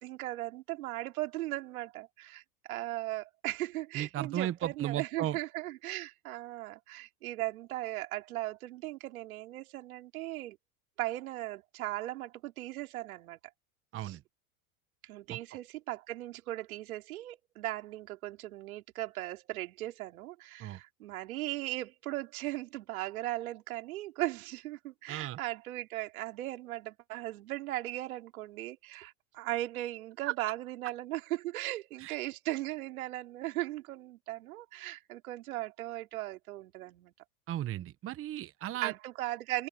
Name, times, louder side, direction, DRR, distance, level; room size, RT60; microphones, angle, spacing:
voice 1, 0.0-2.4 2.7-10.6 11.0-13.4 14.0-14.2 15.0-37.1 38.8-39.7, right 16 dB, 75° right, 3.0 m, -38 dB
voice 2, 3.9-5.4 13.9-14.2 15.3-15.4 20.6-20.8 25.1-25.4 30.3-30.4 32.0-32.1 37.5-38.9, right 12 dB, 30° right, 1.1 m, -35 dB
open air
hypercardioid pair, 110°, 43 cm